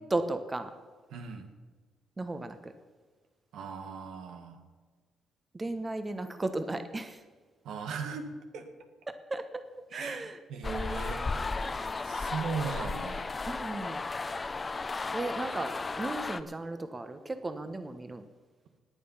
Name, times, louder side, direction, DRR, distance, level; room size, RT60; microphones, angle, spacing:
voice 1, 0.1-0.7 2.2-2.7 5.5-7.2 9.1-9.4 9.9-10.3 13.5-14.0 15.1-18.2, right 2 dB, 25° right, 9 dB, 1.1 m, -35 dB
voice 2, 1.1-1.5 3.5-4.6 7.6-8.7 9.9-13.3, right 5 dB, 80° right, 6 dB, 1.8 m, -38 dB
sound 1, 10.6-16.4, left 3 dB, 30° left, 0.7 m, -34 dB
19.5 x 8.9 x 5.7 m, 1.4 s
cardioid pair, 90°, 0 cm